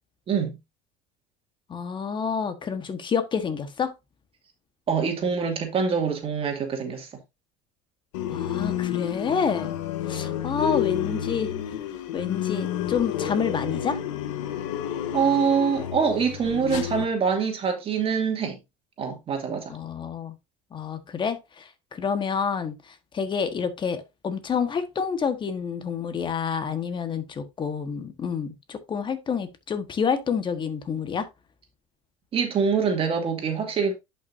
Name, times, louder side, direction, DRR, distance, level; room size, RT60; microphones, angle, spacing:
voice 1, 0.3-0.6 4.9-7.1 15.1-18.6 19.0-19.7 32.3-33.9, right 6 dB, 35° right, 2.3 m, -24 dB
voice 2, 1.7-3.9 8.3-9.8 10.1-11.5 12.1-14.0 19.7-20.3 20.7-31.3, left 6 dB, 30° left, 1.4 m, -28 dB
sound 1, 8.1-17.1, left 11 dB, 85° left, 1.2 m, -30 dB
10.5 x 5.7 x 2.7 m
supercardioid pair, 105°, 16 cm